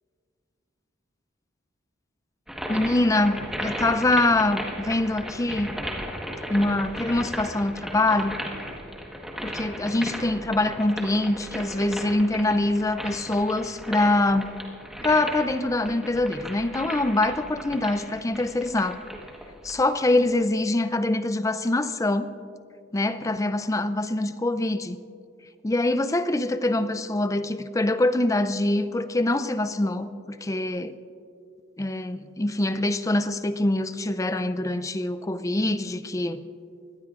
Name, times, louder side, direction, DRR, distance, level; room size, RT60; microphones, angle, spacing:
sound 1, 2.5-20.0, equal, ahead, 1.3 m, -36 dB
voice 1, 2.7-5.7 6.5-8.3 9.4-14.5 15.0-19.0 19.6-22.3 22.9-25.0 25.6-30.9 31.8-36.4, left 2 dB, 15° left, 0.5 m, -24 dB
23.5 x 18.0 x 2.5 m
head